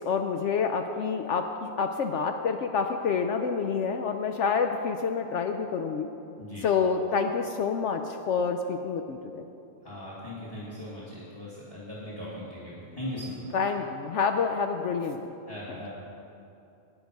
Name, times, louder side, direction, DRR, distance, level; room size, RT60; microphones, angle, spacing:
voice 1, 0.0-6.1 6.6-9.4 13.5-15.2, left 5 dB, 65° left, 6 dB, 0.8 m, -28 dB
voice 2, 9.8-13.5 15.4-15.9, left 1 dB, 15° left, -8 dB, 2.1 m, -39 dB
10.5 x 9.1 x 5.2 m, 2.7 s
omnidirectional pair, 1.5 m